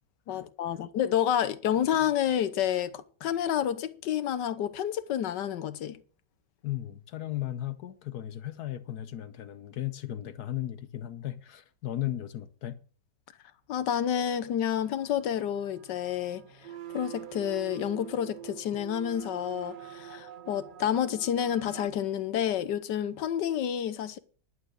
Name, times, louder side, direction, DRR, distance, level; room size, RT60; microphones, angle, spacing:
voice 1, 0.3-6.0 13.7-16.4 16.9-24.2, left 10 dB, 85° left, 1.5 m, -29 dB
voice 2, 6.6-12.8, left 13 dB, 70° left, 1.3 m, -36 dB
sound 1, 14.6-21.9, right 11 dB, 60° right, 0.5 m, -45 dB
11.0 x 9.1 x 6.4 m
omnidirectional pair, 1.8 m